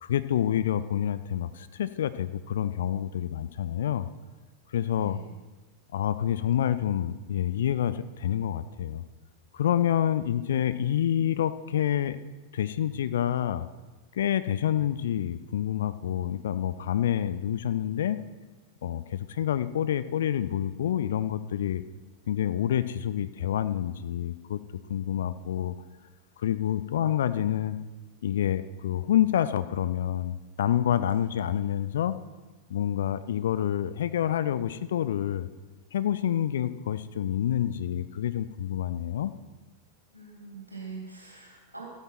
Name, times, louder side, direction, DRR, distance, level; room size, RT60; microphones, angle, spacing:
voice 1, 0.0-4.1 4.7-5.2 5.9-9.0 9.5-12.2 12.5-13.7 14.1-18.2 18.8-21.8 22.3-24.6 24.9-25.7 26.4-27.8 28.2-32.2 32.7-35.5 35.9-39.3, left 10 dB, 60° left, 14 dB, 0.5 m, -28 dB
voice 2, 5.0-5.3 31.5-31.7 40.1-41.8, right 4 dB, 85° right, -3 dB, 3.5 m, -44 dB
14.0 x 8.4 x 6.0 m, 1.2 s
figure-of-eight pair, 90°, 0 cm